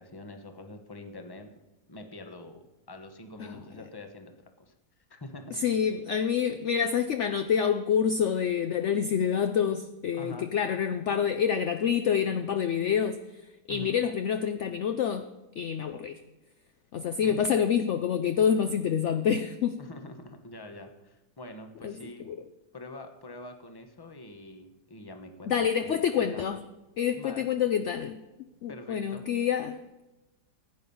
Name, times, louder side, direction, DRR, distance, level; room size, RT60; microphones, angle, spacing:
voice 1, 0.0-1.5 1.9-4.3 4.6-4.7 5.1-5.6 10.1-10.5 13.7-13.9 17.2-17.5 19.8-22.2 22.7-26.0 26.3-26.4 27.2-27.5 28.7-29.2, left 2 dB, 15° left, 6 dB, 0.9 m, -45 dB
voice 2, 5.5-13.4 13.7-15.3 15.6-16.2 16.9-19.8 21.8-22.0 22.2-22.4 25.5-26.6 27.0-28.2 28.6-30.0, left 8 dB, 70° left, 9 dB, 0.7 m, -27 dB
15.5 x 9.0 x 5.5 m, 1.0 s
omnidirectional pair, 1.9 m